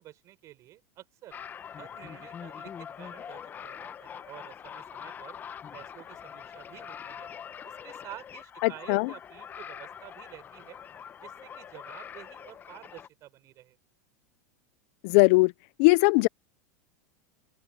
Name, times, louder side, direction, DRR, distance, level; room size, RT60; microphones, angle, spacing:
voice 1, 0.0-1.4 1.8-5.4 5.7-7.3 7.6-10.8 11.2-13.8, right 14 dB, 35° right, 6.6 m, -49 dB
sound 1, 1.3-13.1, left 8 dB, 20° left, 0.8 m, -44 dB
voice 2, 8.6-9.1 15.0-15.5 15.8-16.3, left 26 dB, 55° left, 0.5 m, -20 dB
open air
supercardioid pair, 145°, 9 cm